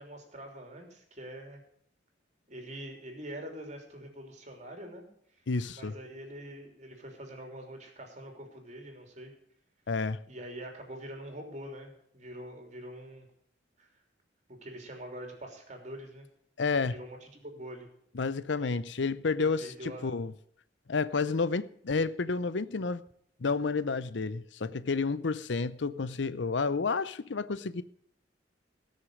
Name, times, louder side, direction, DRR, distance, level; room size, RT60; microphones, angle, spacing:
voice 1, 0.0-1.6 2.5-5.4 5.7-9.3 10.3-13.3 13.8-13.9 14.6-16.3 16.8-17.9 19.6-20.1, right 1 dB, 40° right, 3.2 m, -44 dB
voice 2, 5.5-6.0 9.9-10.2 16.6-16.9 18.1-20.3 20.9-23.0 23.4-27.8, left 4 dB, 75° left, 0.6 m, -30 dB
18.0 x 6.6 x 6.4 m
head